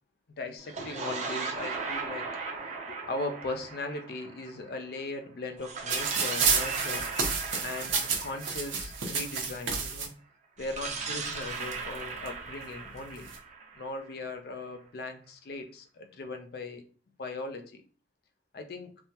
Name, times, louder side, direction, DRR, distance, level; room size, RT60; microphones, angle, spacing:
voice 1, 0.4-2.4 2.9-7.1 7.6-10.1 10.6-13.3 13.7-16.8 17.2-17.8 18.5-18.9, left 2 dB, 55° left, 7 dB, 0.4 m, -38 dB
sound 1, 0.6-5.0 5.6-9.5 10.6-14.4, right 4 dB, 40° right, 0.5 m, -38 dB
sound 2, 5.9-10.1 11.0-11.1 11.3-12.3 13.0-13.4, right 5 dB, 80° right, 0.7 m, -30 dB
3.5 x 2.1 x 2.8 m, 0.40 s
head